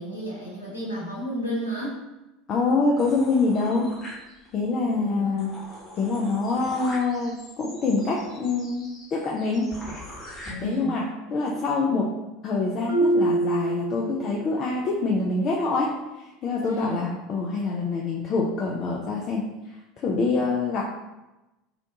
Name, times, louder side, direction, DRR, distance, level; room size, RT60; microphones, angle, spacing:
voice 1, 0.0-2.0 4.9-5.4 10.4-10.9 16.6-17.1, right 1 dB, 85° left, -7 dB, 1.0 m, -32 dB
voice 2, 2.5-3.9 4.5-5.5 6.0-9.7 10.6-12.1 12.4-16.0 16.4-19.5 20.0-20.9, left 3 dB, 35° left, -3 dB, 0.4 m, -25 dB
sound 1, 3.0-4.7 5.1-5.2 5.4-10.5, left 1 dB, 15° left, 1.0 m, -42 dB
Marimba xylophone, 12.9-14.6, right 2 dB, 50° right, 1.0 m, -24 dB
2.5 x 2.2 x 2.7 m, 1.0 s
figure-of-eight pair, 75°, 0 cm